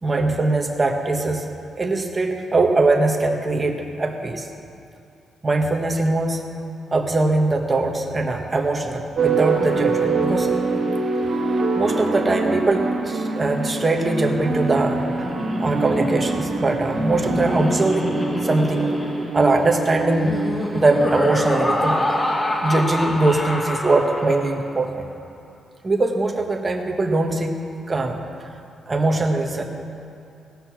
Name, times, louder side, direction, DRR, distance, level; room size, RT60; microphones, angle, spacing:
voice 1, 0.0-1.5 1.8-4.5 5.4-6.4 6.9-10.5 11.3-15.0 15.6-18.9 19.3-20.4 20.7-22.2 22.6-25.1 25.8-27.5 27.9-28.2 28.9-29.6, right 2 dB, 25° right, 2 dB, 1.3 m, -21 dB
sound 1, 9.2-22.5, right 3 dB, 55° right, 1.8 m, -25 dB
Laughter, 14.3-24.7, left 1 dB, 20° left, 1.2 m, -27 dB
17.0 x 6.7 x 6.0 m, 2.5 s
cardioid pair, 90°, 0 cm